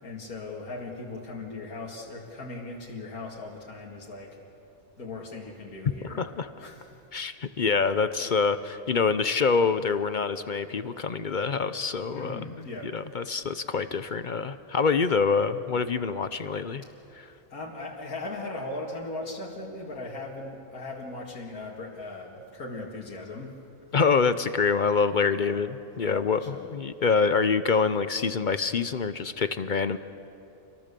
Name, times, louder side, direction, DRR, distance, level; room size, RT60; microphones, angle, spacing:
voice 1, 0.0-4.4 5.0-6.2 6.6-7.0 12.1-13.0 16.8-16.9 17.5-23.6 25.3-25.6 26.0-26.7, left 2 dB, 85° left, -3 dB, 2.6 m, -38 dB
voice 2, 6.0-6.5 7.1-16.8 17.1-17.3 23.9-30.0, left 5 dB, 45° left, 11 dB, 0.6 m, -26 dB
28.5 x 23.0 x 6.8 m, 2.8 s
omnidirectional pair, 1.5 m